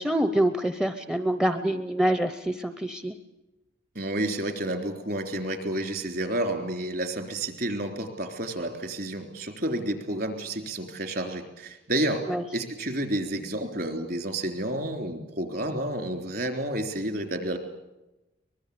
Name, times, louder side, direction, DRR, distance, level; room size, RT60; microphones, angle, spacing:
voice 1, 0.0-3.1 12.3-12.4, right 1 dB, 5° right, 9 dB, 0.7 m, -26 dB
voice 2, 4.0-12.3 12.5-17.6, right 1 dB, 50° right, 6 dB, 3.6 m, -30 dB
23.5 x 21.0 x 8.6 m, 0.98 s
head